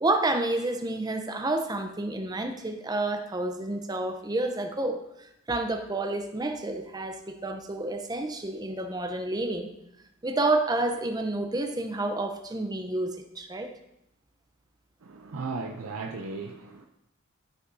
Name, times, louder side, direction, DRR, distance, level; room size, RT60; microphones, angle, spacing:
voice 1, 0.0-5.0 5.5-9.7 10.2-13.7, right 2 dB, 20° right, 6 dB, 0.6 m, -29 dB
voice 2, 15.0-16.9, right 4 dB, 80° right, 3 dB, 0.5 m, -36 dB
13.5 x 5.6 x 2.7 m, 0.85 s
head